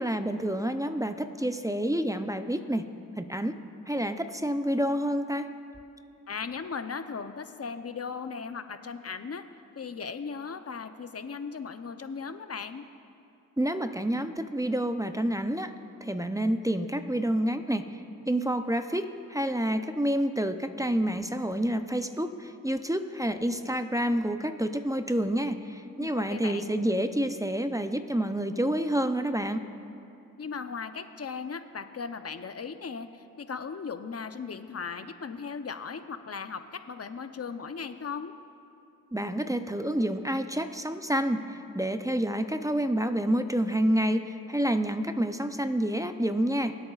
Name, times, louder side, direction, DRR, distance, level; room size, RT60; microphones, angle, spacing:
voice 1, 0.0-2.9 3.2-3.6 3.9-5.5 13.6-15.7 16.0-29.6 39.1-46.8, right 1 dB, 10° right, 8 dB, 0.6 m, -28 dB
voice 2, 6.3-9.4 9.8-12.8 26.0-26.7 30.4-38.3, left 5 dB, 45° left, 9 dB, 0.7 m, -37 dB
23.5 x 8.6 x 2.4 m, 2.7 s
cardioid pair, 45°, 35 cm